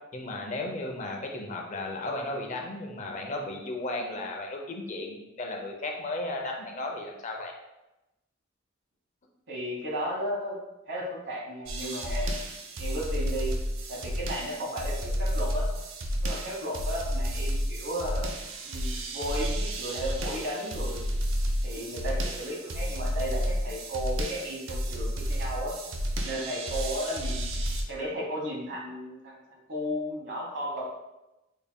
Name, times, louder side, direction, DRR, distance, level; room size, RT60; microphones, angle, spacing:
voice 1, 0.1-7.5, left 2 dB, 40° left, 1 dB, 0.5 m, -35 dB
voice 2, 9.5-10.6 10.9-12.3 12.8-13.5 13.9-15.6 16.2-18.3 18.6-21.1 21.6-25.7 26.2-27.5 27.9-30.8, equal, 60° right, -2 dB, 1.1 m, -34 dB
sound 1, 11.7-27.8, equal, 80° right, 0.5 m, -31 dB
4.2 x 3.5 x 2.2 m, 0.96 s
head